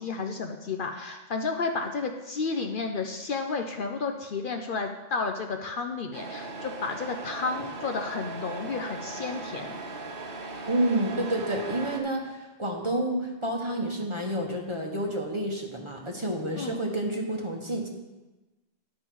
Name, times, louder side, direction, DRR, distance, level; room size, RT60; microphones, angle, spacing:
voice 1, 0.0-9.8 16.6-16.8, left 4 dB, 60° left, 5 dB, 0.7 m, -32 dB
Truck, 6.1-12.0, right 3 dB, 55° right, 1.3 m, -38 dB
voice 2, 10.7-17.9, right 1 dB, 30° right, 1 dB, 1.1 m, -29 dB
11.0 x 5.4 x 4.6 m, 1.1 s
omnidirectional pair, 1.1 m